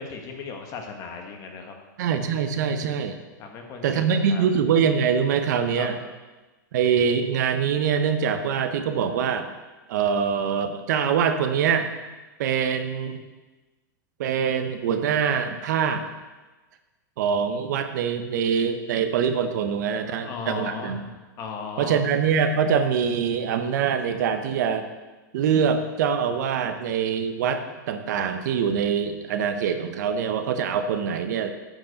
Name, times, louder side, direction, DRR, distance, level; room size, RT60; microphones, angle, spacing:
voice 1, 0.0-1.7 3.4-4.4 5.8-5.9 20.0-21.0 21.4-22.0, left 5 dB, 35° left, 3 dB, 1.5 m, -36 dB
voice 2, 2.0-3.2 3.8-6.0 6.7-9.5 9.9-11.9 12.4-13.2 14.2-16.1 17.2-21.1 21.8-24.9 25.3-31.5, right 7 dB, 65° right, 8 dB, 0.9 m, -24 dB
8.9 x 5.2 x 6.5 m, 1.2 s
hypercardioid pair, 135°, 10 cm